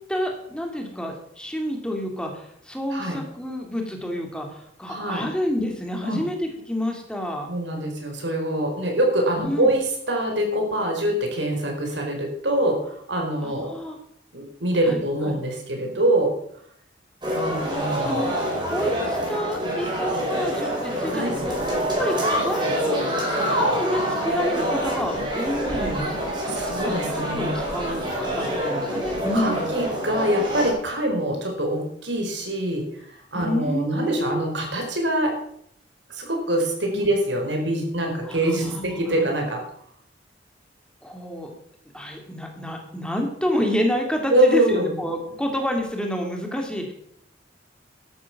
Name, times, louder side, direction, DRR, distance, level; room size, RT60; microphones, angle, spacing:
voice 1, 0.1-6.4 6.7-7.5 9.4-9.7 13.4-14.0 14.9-15.4 17.6-18.3 18.7-21.6 22.0-22.1 22.4-23.0 23.5-29.6 33.3-34.5 36.9-37.1 38.2-39.2 41.0-41.5 41.9-46.9, equal, 5° left, 2 dB, 2.5 m, -29 dB
voice 2, 4.9-5.2 6.0-6.2 7.5-13.8 14.3-16.3 17.3-18.2 21.1-21.3 26.5-27.5 29.3-32.9 33.3-35.3 36.1-39.6 44.3-44.9, right 1 dB, 80° right, 3 dB, 4.5 m, -24 dB
sound 1, 17.2-30.7, equal, 25° right, 5.1 m, -26 dB
13.0 x 11.5 x 5.9 m, 0.71 s
head